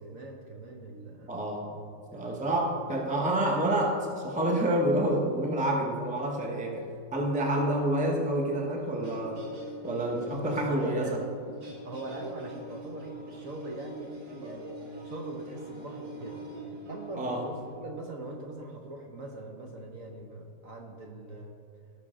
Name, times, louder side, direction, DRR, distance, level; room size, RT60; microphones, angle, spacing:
voice 1, 0.0-1.3 10.3-11.2 11.6-14.7 15.0-16.4 16.9-21.5, right 2 dB, 55° right, 1 dB, 1.2 m, -41 dB
voice 2, 1.3-1.7 2.1-9.4 9.8-11.2 17.2-17.5, right 1 dB, 5° right, 0 dB, 0.8 m, -28 dB
sound 1, 8.2-17.8, right 1 dB, 75° right, 2.1 m, -44 dB
17.5 x 6.3 x 3.8 m, 2.4 s
omnidirectional pair, 1.9 m